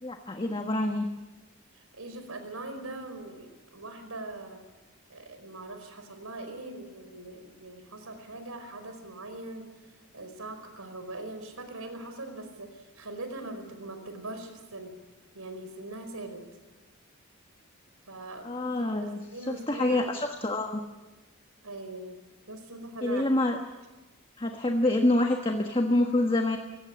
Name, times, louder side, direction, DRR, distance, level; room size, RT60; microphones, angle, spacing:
voice 1, 0.0-1.1 18.4-20.8 23.0-23.6 24.4-26.6, left 1 dB, 25° left, 4 dB, 1.3 m, -27 dB
voice 2, 1.7-4.6 5.1-9.7 10.1-14.9 15.3-16.4 18.1-20.1 21.6-22.2 22.5-23.2, right 2 dB, 85° right, 7 dB, 5.0 m, -41 dB
24.5 x 17.5 x 8.6 m, 1.2 s
head